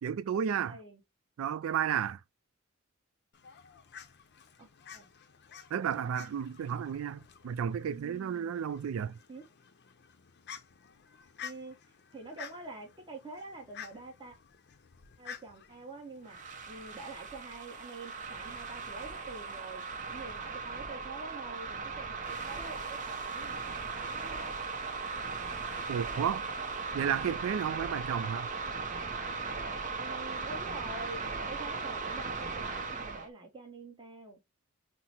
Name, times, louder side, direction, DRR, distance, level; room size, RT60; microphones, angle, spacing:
voice 1, 0.0-0.8 1.4-2.2 5.7-9.2 25.9-26.5 26.9-28.5, right 8 dB, 80° right, 0.3 m, -32 dB
voice 2, 0.7-1.0 4.6-5.1 7.9-8.7 9.3-9.4 11.4-11.7 12.1-14.4 15.2-24.5 30.0-34.4, right 3 dB, 25° right, 1.0 m, -47 dB
Fowl, 3.3-17.0, left 7 dB, 55° left, 0.6 m, -51 dB
sound 1, 16.2-33.3, right 4 dB, 40° right, 0.7 m, -38 dB
5.8 x 2.0 x 2.8 m
head